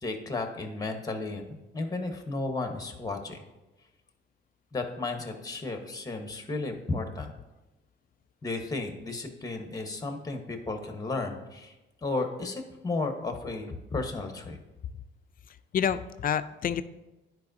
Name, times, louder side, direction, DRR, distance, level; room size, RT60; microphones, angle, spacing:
voice 1, 0.0-3.4 4.7-7.3 8.4-11.8 12.0-14.6, left 3 dB, 20° left, 5 dB, 1.0 m, -33 dB
voice 2, 15.5-16.8, left 8 dB, 45° left, 12 dB, 0.4 m, -29 dB
10.5 x 4.6 x 2.6 m, 1.0 s
cardioid pair, 90°, 20 cm